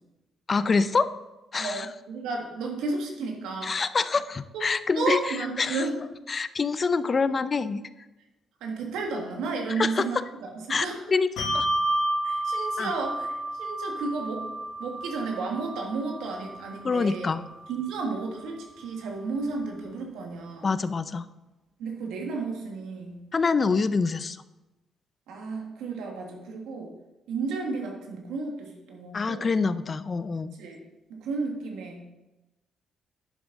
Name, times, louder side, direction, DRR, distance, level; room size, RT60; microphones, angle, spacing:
voice 1, 0.5-1.1 1.5-1.9 3.6-5.9 6.3-7.8 9.8-10.1 10.7-11.3 11.5-11.7 12.8-12.9 16.8-17.4 20.6-21.3 23.3-24.4 29.1-30.5, left 4 dB, 35° left, 14 dB, 0.5 m, -26 dB
voice 2, 1.6-3.7 4.5-4.6 5.0-5.9 8.6-10.2 10.5-11.0 12.2-13.3 13.6-14.5 14.8-17.3 17.7-20.7 21.8-23.2 25.3-26.9 27.3-29.5 30.6-30.8 31.1-32.1, right 4 dB, 90° right, 1 dB, 1.9 m, -32 dB
Bell, 11.4-18.2, right 1 dB, 80° left, 2.4 m, -31 dB
11.0 x 7.2 x 4.1 m, 1.0 s
cardioid pair, 90°, 0 cm